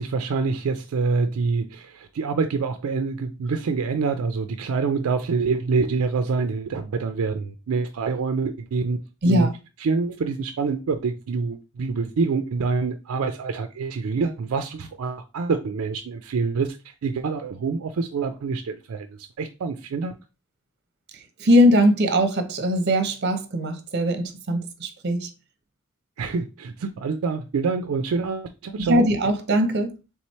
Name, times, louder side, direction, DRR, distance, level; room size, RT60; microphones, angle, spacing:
voice 1, 0.0-9.0 9.2-9.5 9.8-20.1 26.2-29.1, right 4 dB, 75° right, 0.4 m, -26 dB
voice 2, 21.4-25.3 28.9-29.9, equal, 50° right, 0.7 m, -20 dB
3.6 x 3.1 x 4.2 m
head